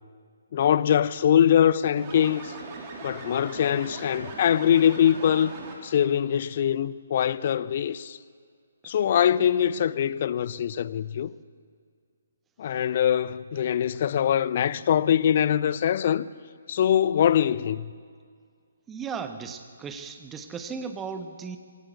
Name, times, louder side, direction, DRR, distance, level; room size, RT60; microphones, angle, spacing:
voice 1, 0.5-2.5 3.0-5.5 5.8-8.2 8.8-11.3 12.6-16.3 16.7-17.9, left 9 dB, 40° left, 0.7 m, -23 dB
sound 1, 2.0-6.1, right 3 dB, 30° right, 3.6 m, -40 dB
voice 2, 18.9-21.6, right 5 dB, 10° right, 1.3 m, -36 dB
21.5 x 18.0 x 8.4 m
figure-of-eight pair, 135°, 0 cm